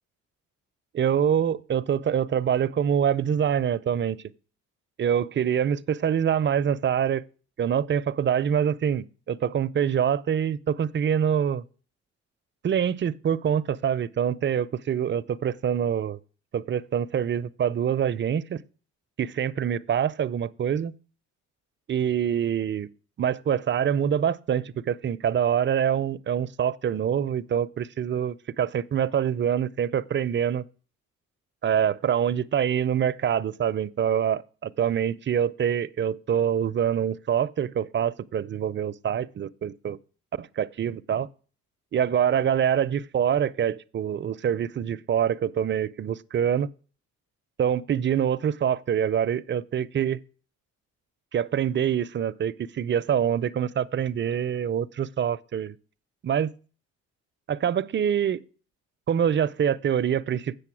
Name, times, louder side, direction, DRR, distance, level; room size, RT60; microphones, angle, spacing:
voice 1, 0.9-4.2 5.0-7.2 7.6-11.6 12.6-16.2 16.5-18.6 19.2-20.9 21.9-22.9 23.2-30.6 31.6-40.0 40.4-41.3 41.9-46.7 47.6-50.2 51.3-55.8 56.2-56.5 57.5-58.4 59.1-60.5, right 8 dB, 40° right, 0.5 m, -25 dB
8.4 x 6.6 x 6.1 m
cardioid pair, 90°, 30 cm